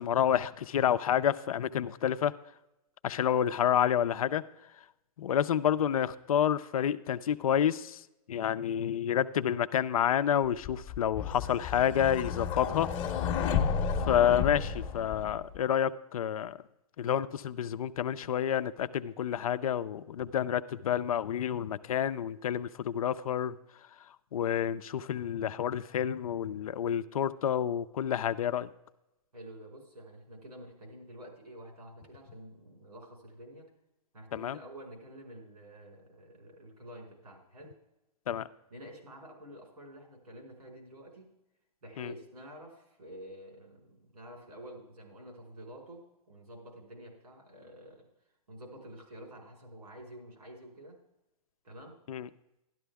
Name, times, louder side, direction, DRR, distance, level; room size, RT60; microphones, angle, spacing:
voice 1, 0.0-2.3 3.0-4.4 5.2-8.0 8.3-13.0 14.1-16.6 17.0-23.6 24.3-28.7 34.3-34.6 38.3-38.5 42.0-42.1 52.1-52.3, left 9 dB, 65° left, 13 dB, 0.6 m, -29 dB
sound 1, 10.6-15.6, left 7 dB, 25° left, 0.9 m, -32 dB
voice 2, 29.3-33.6 34.1-37.7 38.7-41.3 41.8-48.1 48.5-51.0 51.6-51.9, equal, 90° right, 0 dB, 4.9 m, -49 dB
12.0 x 11.5 x 3.5 m, 0.90 s
hypercardioid pair, 140°, 19 cm